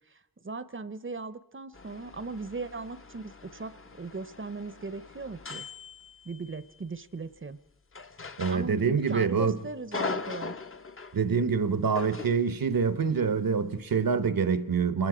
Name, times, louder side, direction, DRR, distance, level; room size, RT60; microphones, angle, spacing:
voice 1, 0.1-5.6 6.2-7.6 8.5-10.6, right 3 dB, 35° right, 0.6 m, -38 dB
sound 1, 1.7-6.7 7.9-9.2 9.5-11.2 11.9-12.5, left 4 dB, 40° left, 0.6 m, -40 dB
voice 2, 8.4-9.6 11.1-15.1, right 5 dB, 80° right, 0.9 m, -26 dB
27.0 x 20.0 x 4.9 m
wide cardioid pair, 65°, 34 cm